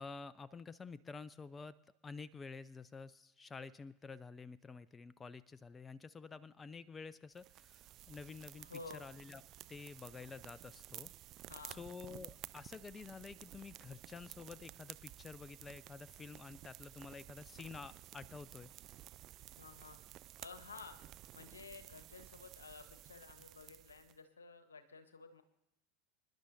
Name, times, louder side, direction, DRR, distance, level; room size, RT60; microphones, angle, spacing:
voice 1, 0.0-1.8 2.0-8.7 9.0-9.4 9.7-11.1 11.8-18.7, left 4 dB, 20° left, 18 dB, 0.4 m, -50 dB
sound 1, 7.4-24.2, right 14 dB, 45° right, 0.4 m, -54 dB
voice 2, 8.6-9.1 11.5-11.8 19.6-20.0 20.4-21.0 21.3-25.4, left 4 dB, 80° left, 9 dB, 1.1 m, -53 dB
26.5 x 11.0 x 2.7 m, 0.82 s
figure-of-eight pair, 80°, 0 cm